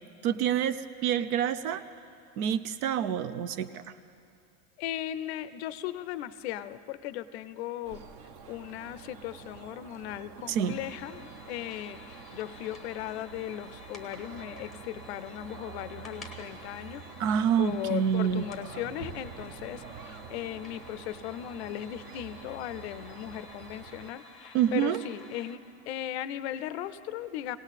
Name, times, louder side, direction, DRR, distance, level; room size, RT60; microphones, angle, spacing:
voice 1, 0.2-1.8 2.4-3.8 10.5-10.8 17.2-18.5 24.5-25.0, right 9 dB, 85° right, 13 dB, 0.8 m, -27 dB
voice 2, 4.8-8.0 8.5-17.0 17.6-25.6 25.9-27.6, left 12 dB, 50° left, 14 dB, 0.4 m, -37 dB
sound 1, 7.8-24.1, right 6 dB, 35° right, 0.5 m, -47 dB
sound 2, 10.6-25.6, left 3 dB, ahead, 0.8 m, -51 dB
19.5 x 17.5 x 4.1 m, 2.5 s
supercardioid pair, 180°, 43 cm